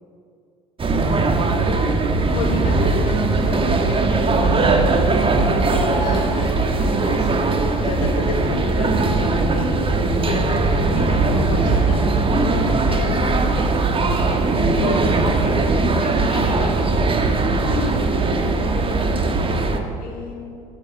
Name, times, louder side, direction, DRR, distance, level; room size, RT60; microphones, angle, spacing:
sound 1, 0.8-19.8, right 3 dB, 30° right, 1.4 m, -19 dB
voice 1, 2.3-5.0 5.7-7.3 7.8-9.7 10.3-12.0 12.3-13.6 14.3-16.8, left 5 dB, 85° left, 1 dB, 1.2 m, -32 dB
voice 2, 5.4-5.7 17.2-20.5, left 4 dB, 55° left, -1 dB, 3.2 m, -33 dB
9.8 x 8.7 x 8.9 m, 2.5 s
hypercardioid pair, 75°, 19 cm